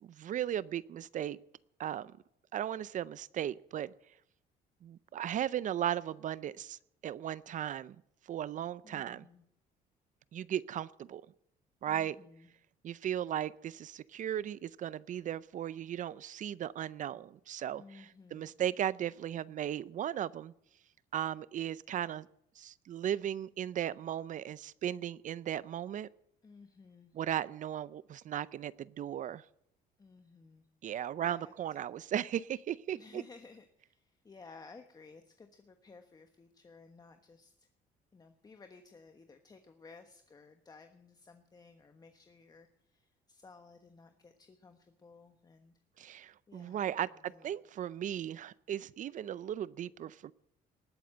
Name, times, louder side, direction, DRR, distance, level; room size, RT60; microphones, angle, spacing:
voice 1, 0.0-1.4 1.8-2.1 2.5-3.9 4.8-8.0 8.3-9.3 10.3-11.2 11.8-12.2 12.8-20.5 21.1-22.3 22.6-26.1 27.1-29.4 30.8-33.2 46.0-50.3, right 10 dB, 50° right, 19 dB, 0.6 m, -36 dB
voice 2, 8.8-9.4 11.9-12.5 17.7-18.5 26.4-27.2 30.0-30.7 31.2-31.5 32.9-37.7 38.1-45.8 46.5-47.6, left 4 dB, 25° left, 7 dB, 1.2 m, -56 dB
19.5 x 8.6 x 7.7 m, 0.75 s
cardioid pair, 110°, 17 cm